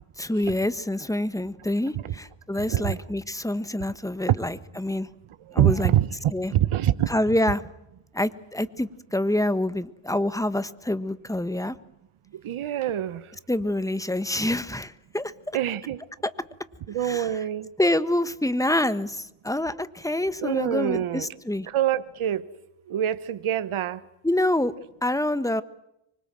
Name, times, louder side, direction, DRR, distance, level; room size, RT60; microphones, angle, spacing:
voice 1, 0.2-5.1 5.5-5.9 6.3-6.5 7.1-7.7 8.1-11.8 13.5-15.3 16.2-16.3 17.0-17.3 17.8-21.7 24.2-24.7 25.0-25.6, left 1 dB, 5° left, 14 dB, 1.4 m, -26 dB
voice 2, 5.6-6.1 6.5-7.1 12.4-13.2 15.5-16.0 16.9-17.7 20.4-21.3 21.7-22.4 22.9-24.0, right 11 dB, 85° right, 14 dB, 1.2 m, -24 dB
25.0 x 24.5 x 7.6 m, 0.83 s
cardioid pair, 90°, 48 cm